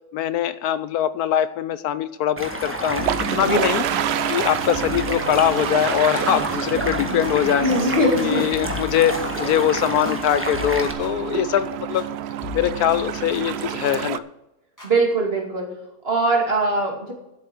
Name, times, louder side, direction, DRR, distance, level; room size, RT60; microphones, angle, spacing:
voice 1, 0.1-3.9 4.3-7.7 8.2-12.1 12.5-14.2, left 10 dB, 80° left, 14 dB, 1.1 m, -22 dB
Stream, 2.4-10.9, right 1 dB, 10° right, 1.3 m, -30 dB
sound 1, 2.9-14.2, right 10 dB, 90° right, 0.5 m, -28 dB
sound 2, 3.0-12.1 12.4-14.0 14.8-14.9, left 3 dB, 10° left, 4.3 m, -36 dB
voice 2, 7.6-8.4 14.8-15.7 16.0-17.1, right 1 dB, 40° right, 0 dB, 2.8 m, -21 dB
10.5 x 8.2 x 6.0 m, 0.92 s
omnidirectional pair, 1.7 m